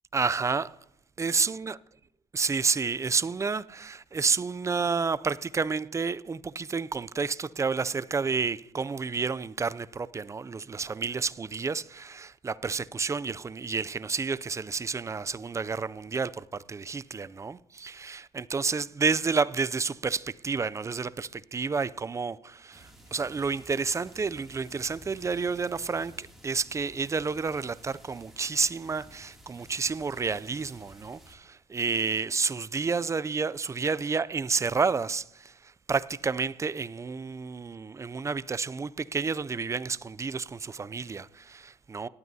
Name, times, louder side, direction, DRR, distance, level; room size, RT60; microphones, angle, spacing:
voice 1, 0.1-0.7 1.2-1.8 2.3-42.1, right 4 dB, 20° right, 0.3 m, -30 dB
sound 1, 22.7-31.3, equal, ahead, 2.5 m, -53 dB
18.5 x 12.5 x 2.7 m
cardioid pair, 110°, 17 cm